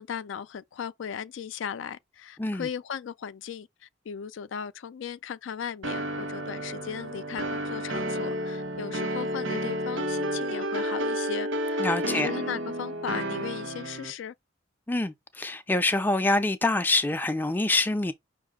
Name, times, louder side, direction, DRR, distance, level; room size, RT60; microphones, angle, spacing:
voice 1, 0.0-14.3, left 7 dB, 75° left, 0.4 m, -37 dB
sound 1, 5.8-14.1, equal, 90° right, 1.1 m, -31 dB
voice 2, 11.8-12.3 14.9-18.1, left 2 dB, 10° left, 0.4 m, -26 dB
5.6 x 2.6 x 3.6 m
head